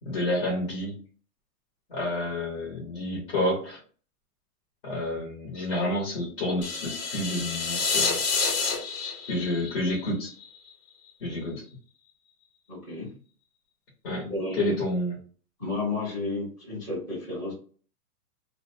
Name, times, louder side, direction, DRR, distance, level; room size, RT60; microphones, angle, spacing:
voice 1, 0.0-0.9 1.9-3.8 4.8-8.2 9.3-10.3 11.2-11.6 14.0-14.3 14.6-15.2, left 1 dB, 35° left, -5 dB, 0.9 m, -29 dB
sound 1, 6.6-10.7, left 4 dB, 65° left, 1.2 m, -29 dB
voice 2, 12.7-13.1 14.2-14.8 15.6-17.5, left 2 dB, 5° left, -11 dB, 0.6 m, -32 dB
2.5 x 2.1 x 2.6 m, 0.41 s
hypercardioid pair, 165°, 47 cm